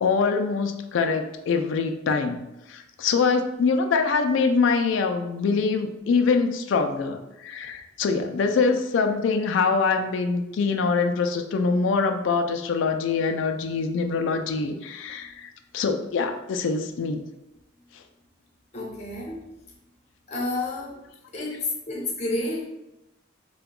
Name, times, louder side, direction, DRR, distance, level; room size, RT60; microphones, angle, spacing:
voice 1, 0.0-17.2, left 4 dB, 65° left, 6 dB, 0.3 m, -24 dB
voice 2, 18.7-19.4 20.3-21.0 21.3-21.6 21.9-22.7, left 2 dB, 35° left, -3 dB, 0.6 m, -30 dB
2.7 x 2.3 x 3.6 m, 0.95 s
head